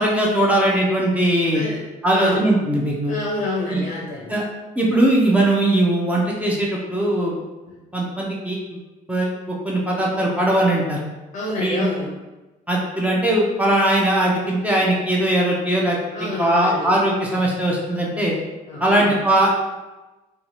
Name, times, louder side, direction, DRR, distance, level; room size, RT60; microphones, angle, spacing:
voice 1, 0.0-1.6 2.0-3.1 3.7-3.8 4.3-4.4 4.8-7.3 7.9-8.6 9.1-11.0 11.6-11.9 12.7-18.3 18.8-19.5, right 1 dB, 10° right, -4 dB, 0.5 m, -20 dB
voice 2, 2.1-2.5 3.1-4.4 7.7-7.8 11.3-12.1 16.1-17.0 18.6-19.3, left 2 dB, 45° left, -3 dB, 0.6 m, -28 dB
2.7 x 2.3 x 2.8 m, 1.1 s
cardioid pair, 110°, 17 cm